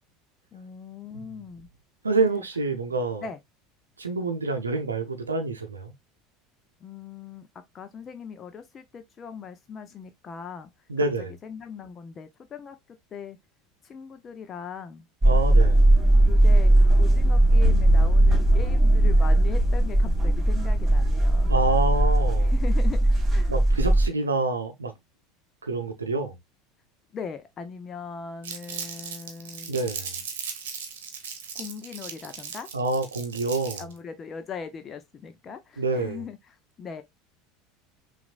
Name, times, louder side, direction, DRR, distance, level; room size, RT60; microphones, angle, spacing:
voice 1, 0.5-1.7 3.2-3.4 6.8-7.5 7.7-10.7 11.2-13.4 13.8-15.0 16.2-21.5 22.4-23.5 27.1-29.8 31.5-32.7 33.8-37.0, left 6 dB, 35° left, 0.6 m, -40 dB
voice 2, 2.0-3.2 4.0-5.9 10.9-11.3 15.2-15.8 21.5-22.5 23.5-24.9 25.6-26.3 29.7-30.1 32.7-33.8 35.8-36.2, right 3 dB, 85° right, 0.7 m, -27 dB
sound 1, 15.2-24.1, right 1 dB, 20° right, 2.7 m, -19 dB
Crumpling crinkling, 28.4-34.0, right 6 dB, 70° right, 0.9 m, -37 dB
5.9 x 2.6 x 2.4 m
figure-of-eight pair, 75°, 0 cm